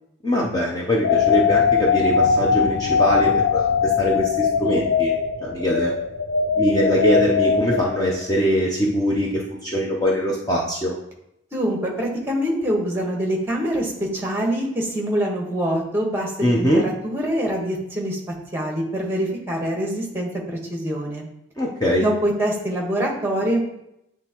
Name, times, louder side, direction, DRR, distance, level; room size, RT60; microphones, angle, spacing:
voice 1, 0.2-5.1 5.4-5.9 6.6-10.9 16.4-16.8 21.6-22.0, equal, 20° left, -3 dB, 0.7 m, -22 dB
sound 1, 1.0-8.4, left 6 dB, 70° left, 0.4 m, -21 dB
voice 2, 11.5-18.2 18.5-21.3 22.0-23.6, right 1 dB, 10° right, -1 dB, 1.2 m, -24 dB
8.9 x 3.6 x 2.9 m, 0.81 s
head